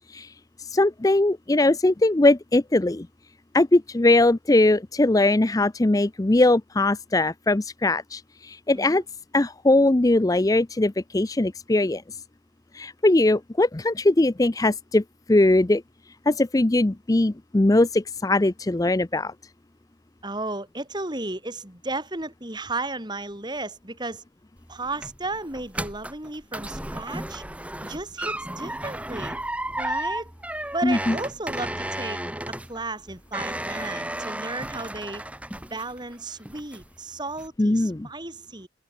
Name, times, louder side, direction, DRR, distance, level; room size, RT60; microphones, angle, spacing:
voice 1, 0.7-3.1 3.5-9.0 9.3-12.0 12.7-15.0 15.3-15.8 16.3-19.3 30.8-31.2 37.6-38.1, left 2 dB, 20° left, 0.5 m, -20 dB
voice 2, 20.2-24.2 24.7-27.4 27.8-29.4 29.8-30.3 30.7-32.2 32.5-35.2 35.6-38.7, right 2 dB, 20° right, 3.3 m, -34 dB
sound 1, 24.6-36.1 36.5-37.0 37.4-37.5, right 1 dB, 5° right, 3.6 m, -33 dB
open air
head